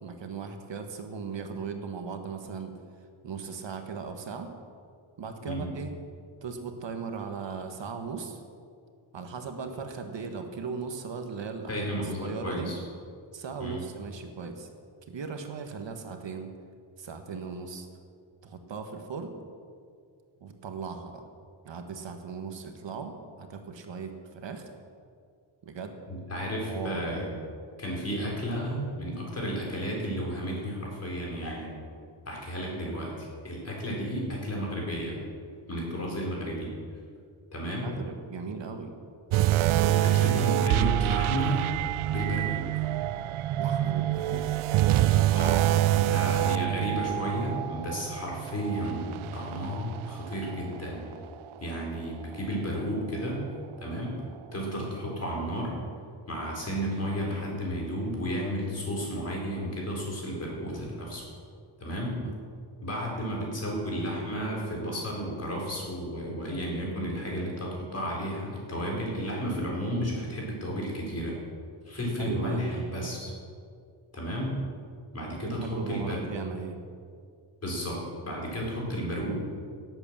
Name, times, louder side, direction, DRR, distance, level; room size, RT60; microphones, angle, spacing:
voice 1, 0.0-2.8 3.2-4.5 5.2-5.9 6.4-8.4 9.1-11.8 12.2-12.7 13.3-14.7 15.1-16.5 17.0-17.9 18.4-19.3 20.4-21.2 21.6-24.7 25.6-26.0 26.7-27.0 32.7-32.9 37.8-38.9 43.6-44.4 62.2-62.4 72.2-72.7 75.4-76.8, right 5 dB, 65° right, 5 dB, 1.4 m, -38 dB
voice 2, 11.7-12.8 13.6-13.8 26.1-27.3 27.8-31.7 32.3-35.2 35.7-36.7 37.5-37.9 39.9-41.6 42.1-42.6 45.3-51.1 51.6-53.4 53.8-54.2 54.5-55.7 56.3-61.2 61.8-62.2 62.8-71.4 71.9-73.3 74.1-74.6 75.1-76.2 77.6-79.3, equal, 30° left, -2 dB, 4.2 m, -32 dB
sound 1, 39.3-50.8 51.1-51.3 52.0-52.1, right 13 dB, 85° right, 0.6 m, -26 dB
18.0 x 8.1 x 7.4 m, 2.2 s
wide cardioid pair, 170°, 48 cm